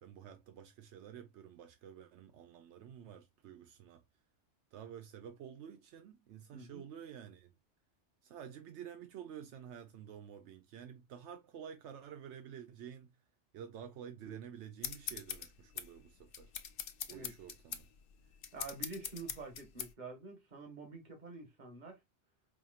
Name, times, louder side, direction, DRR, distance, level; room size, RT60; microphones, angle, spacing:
voice 1, 0.0-4.0 4.7-7.5 8.2-13.1 13.5-16.5 17.1-17.9, right 8 dB, 80° right, 0.9 m, -50 dB
voice 2, 6.5-6.9 17.1-17.3 18.5-22.0, right 3 dB, 40° right, 1.4 m, -48 dB
sound 1, 14.8-19.9, left 8 dB, 60° left, 0.7 m, -43 dB
4.8 x 2.8 x 2.4 m
omnidirectional pair, 1.2 m